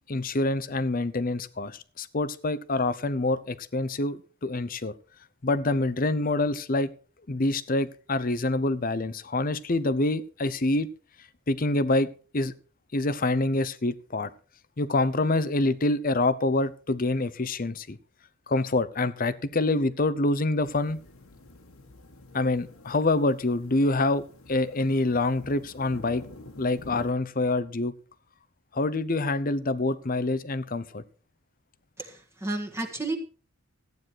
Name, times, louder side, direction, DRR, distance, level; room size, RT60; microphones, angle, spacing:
voice 1, 0.1-4.9 5.4-6.9 7.3-10.9 11.5-12.1 12.3-12.5 12.9-14.3 14.8-18.0 18.5-21.0 22.3-26.2 26.6-27.9 28.7-31.0, left 2 dB, 40° left, 16 dB, 0.7 m, -26 dB
sound 1, 20.6-27.1, left 2 dB, 75° left, 1.6 m, -48 dB
voice 2, 32.0-33.2, right 2 dB, 10° right, 1 dB, 1.6 m, -32 dB
14.5 x 9.4 x 4.6 m, 0.38 s
head